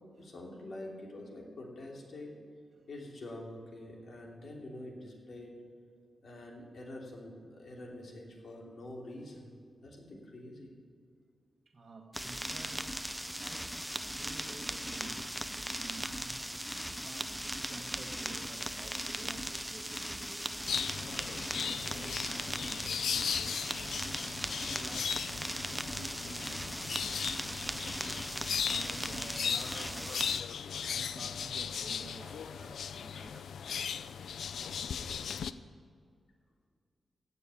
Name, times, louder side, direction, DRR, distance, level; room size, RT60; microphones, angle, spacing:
voice 1, 0.2-2.3 2.9-5.6 6.2-9.5 9.8-10.7, left 1 dB, 70° left, -1 dB, 3.0 m, -46 dB
voice 2, 11.7-13.0 13.4-13.8 14.1-16.5 17.0-23.9 24.5-25.5 25.9-30.2 30.8-34.2, right 3 dB, 50° right, 1 dB, 1.4 m, -52 dB
sound 1, 12.1-30.4, equal, 5° right, 0.6 m, -38 dB
sound 2, 20.7-35.5, left 7 dB, 85° left, 0.4 m, -37 dB
16.0 x 6.8 x 8.3 m, 2.2 s
cardioid pair, 85°, 0 cm